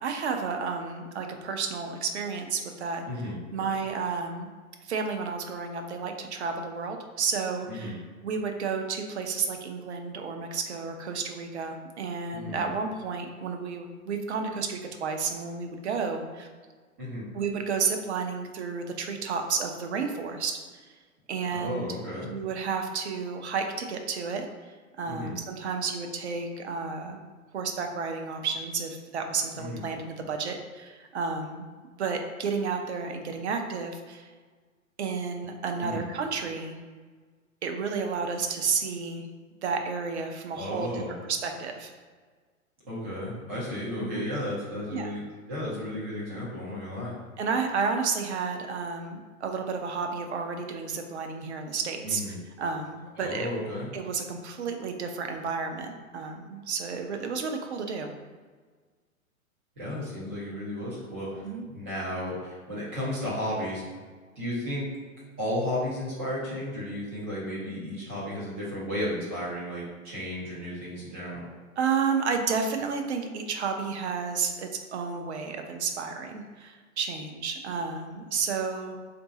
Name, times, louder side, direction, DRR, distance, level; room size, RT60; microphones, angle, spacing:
voice 1, 0.0-3.0 3.5-4.5 4.8-16.5 17.3-20.9 21.3-21.9 22.2-27.2 27.5-31.7 32.0-34.3 35.0-36.8 37.6-39.2 39.6-41.9 44.0-44.2 44.9-45.1 47.4-52.2 52.6-53.5 53.9-58.1 61.4-61.6 71.8-79.0, right 5 dB, 50° right, 4 dB, 0.6 m, -31 dB
voice 2, 12.3-12.7 17.0-17.2 21.5-22.3 25.0-25.3 29.6-29.8 35.8-36.0 40.5-41.2 42.8-45.2 45.5-47.2 52.0-52.4 53.2-53.9 59.8-63.8 64.4-64.9 65.4-71.4, left 1 dB, 10° right, -8 dB, 0.4 m, -33 dB
3.8 x 2.6 x 3.9 m, 1.5 s
figure-of-eight pair, 115°, 43 cm